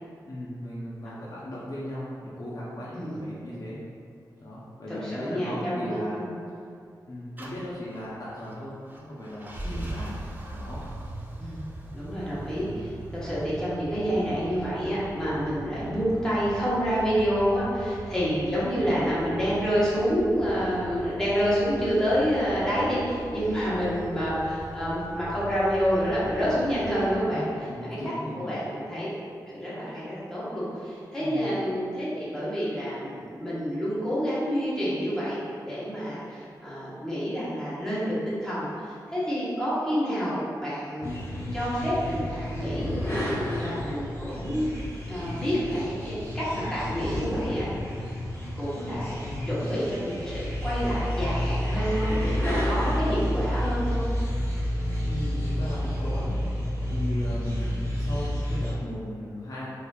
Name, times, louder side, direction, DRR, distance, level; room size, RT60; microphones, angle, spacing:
voice 1, 0.3-3.8 4.4-6.2 7.1-10.2 10.5-10.8 23.6-23.7 27.3-28.6 31.2-31.4 49.2-49.7 55.0-56.4 56.9-59.7, equal, 50° left, -8 dB, 0.6 m, -37 dB
voice 2, 2.9-3.2 4.9-6.4 9.6-9.9 11.4-11.6 11.9-27.5 27.8-28.0 28.4-29.1 29.5-41.1 41.5-42.9 43.6-44.7 45.1-47.6 48.6-49.2 49.5-54.0, equal, 10° left, -10 dB, 1.0 m, -28 dB
sound 1, 7.4-27.2, right 2 dB, 25° right, 0.4 m, -40 dB
sound 2, 41.0-58.7, equal, 30° left, 1.3 m, -30 dB
4.1 x 2.5 x 2.3 m, 2.4 s
wide cardioid pair, 105°, 8 cm